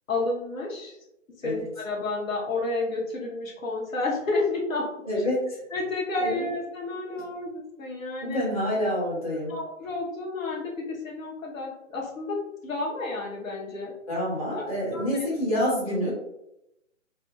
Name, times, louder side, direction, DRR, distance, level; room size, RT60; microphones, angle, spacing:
voice 1, 0.1-1.0 1.4-4.9 5.7-8.4 9.5-13.9 14.9-15.2 16.0-16.1, left 2 dB, 90° left, -2 dB, 0.9 m, -31 dB
voice 2, 5.0-5.6 6.2-6.5 8.2-9.5 14.1-16.1, left 1 dB, 30° left, -8 dB, 0.8 m, -27 dB
2.6 x 2.1 x 2.2 m, 0.84 s
hypercardioid pair, 180°, 39 cm